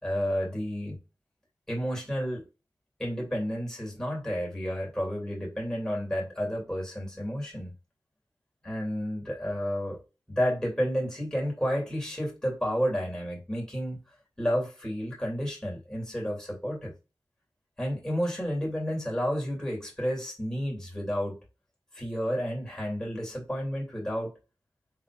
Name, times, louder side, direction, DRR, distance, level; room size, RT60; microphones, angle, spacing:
voice 1, 0.0-1.0 1.7-2.5 3.0-7.7 8.6-10.0 10.3-14.0 14.4-16.9 17.8-21.4 21.9-24.3, equal, 10° left, 2.4 m, -31 dB
4.6 x 3.6 x 2.4 m
wide cardioid pair, 80°, 7 cm